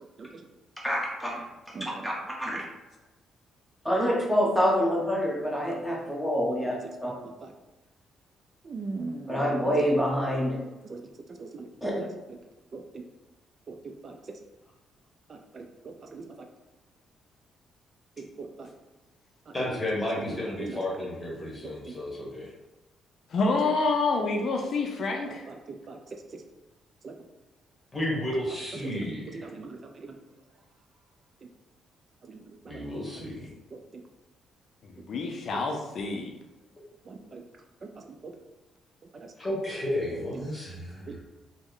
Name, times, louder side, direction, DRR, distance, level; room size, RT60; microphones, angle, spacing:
voice 1, 0.8-1.4 1.8-2.1 2.4-2.6 3.8-7.1 9.3-10.6 11.8-11.9, equal, ahead, -4 dB, 1.0 m, -26 dB
voice 2, 1.8-2.1 7.0-7.1 7.4-7.5 8.6-9.5 10.9-11.0 11.4-11.7 12.7-12.8 13.7-14.2 15.3-15.7 16.1-16.3 18.2-18.7 20.7-20.8 21.6-21.7 25.2-26.0 27.0-27.1 28.8-29.1 29.4-30.2 32.3-33.3 33.7-33.8 37.1-37.4 39.2-39.3 41.1-41.2, right 3 dB, 45° right, 4 dB, 0.3 m, -41 dB
voice 3, 19.5-22.5 27.9-29.5 32.7-33.5 39.4-41.2, left 1 dB, 25° left, -3 dB, 1.2 m, -32 dB
voice 4, 23.3-25.4 34.9-36.3, left 3 dB, 60° left, 2 dB, 0.4 m, -27 dB
3.1 x 2.1 x 3.7 m, 1.1 s
cardioid pair, 90°, 0 cm